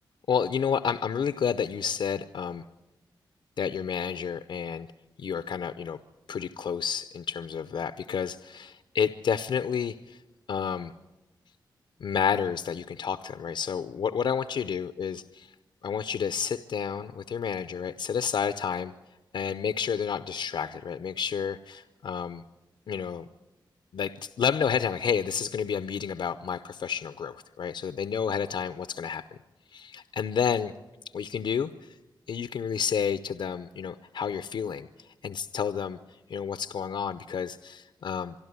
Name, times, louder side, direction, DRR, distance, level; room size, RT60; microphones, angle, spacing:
voice 1, 0.3-2.6 3.6-4.9 5.2-6.0 6.3-10.2 10.5-10.9 12.0-15.5 15.8-18.9 19.3-22.4 22.9-23.2 23.9-29.2 29.7-30.7 31.1-32.0 32.3-34.9 35.2-38.3, left 7 dB, 75° left, 11 dB, 0.7 m, -30 dB
25.0 x 12.0 x 9.6 m, 1.1 s
cardioid pair, 90°, 8 cm